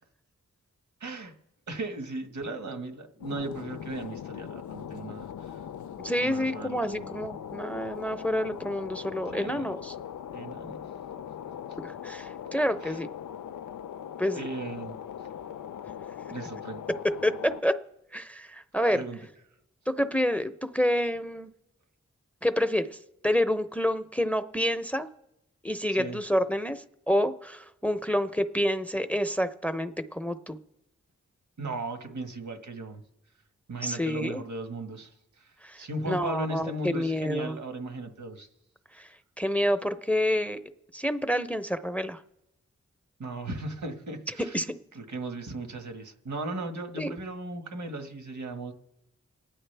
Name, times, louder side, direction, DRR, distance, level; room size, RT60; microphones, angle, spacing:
voice 1, 1.0-1.3 1.7-5.6 6.2-7.1 9.3-9.7 10.3-10.8 12.8-13.0 14.3-15.3 16.3-16.8 18.9-19.2 25.9-26.2 31.6-33.0 33.7-38.5 43.2-44.7 44.9-48.7, right 2 dB, 85° right, 5 dB, 1.7 m, -37 dB
sound 1, 3.2-17.6, left 9 dB, 90° left, 0.5 m, -40 dB
voice 2, 6.0-9.9 11.8-13.1 14.2-14.5 16.9-17.8 18.1-19.0 19.9-21.5 22.4-23.0 23.2-25.1 25.6-30.6 33.8-34.4 35.6-37.6 38.9-39.1 39.4-40.6 40.9-42.2 44.5-44.8 47.0-47.1, equal, 5° left, 11 dB, 0.7 m, -28 dB
29.0 x 9.8 x 3.4 m, 0.92 s
cardioid pair, 55°, 29 cm